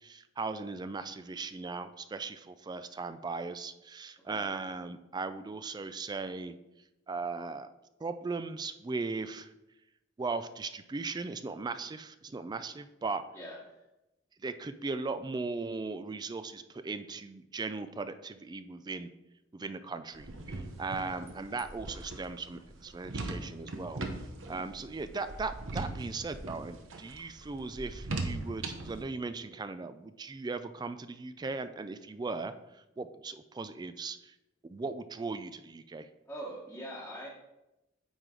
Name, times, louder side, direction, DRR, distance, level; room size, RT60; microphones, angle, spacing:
voice 1, 0.0-6.6 7.1-7.7 8.0-9.5 10.2-13.2 14.4-19.1 19.5-24.0 24.5-34.3 34.6-36.1, right 4 dB, 20° right, 11 dB, 0.3 m, -38 dB
voice 2, 13.3-13.8 20.9-21.2 36.3-37.3, right 1 dB, 10° left, -7 dB, 1.2 m, -43 dB
sound 1, 20.1-29.0, right 2 dB, 90° right, 1.0 m, -40 dB
9.1 x 4.8 x 3.8 m, 0.92 s
head